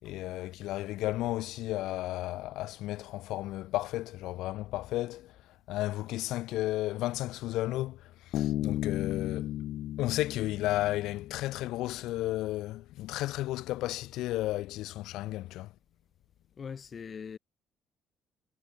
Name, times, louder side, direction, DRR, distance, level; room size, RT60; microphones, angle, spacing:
voice 1, 0.0-9.5 10.0-15.7, left 16 dB, 85° left, 4.3 m, -33 dB
Bass guitar, 8.3-11.9, left 13 dB, 70° left, 0.5 m, -34 dB
voice 2, 16.6-17.4, left 6 dB, 35° left, 2.0 m, -41 dB
cardioid pair, 135°, 0 cm